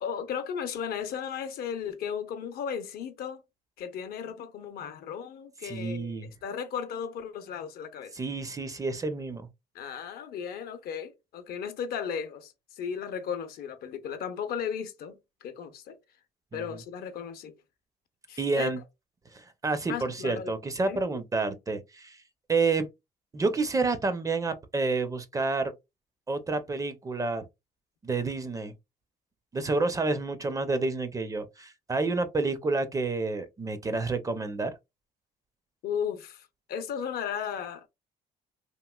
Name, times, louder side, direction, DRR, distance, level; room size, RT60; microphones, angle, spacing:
voice 1, 0.0-3.4 3.8-6.1 6.4-8.2 9.7-16.0 16.5-17.5 18.3-18.7 19.9-20.5 20.8-21.0 35.8-37.9, left 7 dB, 65° left, 0.6 m, -35 dB
voice 2, 5.6-6.3 8.1-9.5 16.5-16.6 18.4-18.8 19.3-22.2 22.5-22.9 23.3-25.7 26.3-27.5 28.0-28.7 29.5-34.7, right 3 dB, 20° right, 0.4 m, -29 dB
2.9 x 2.7 x 2.2 m
cardioid pair, 110°, 17 cm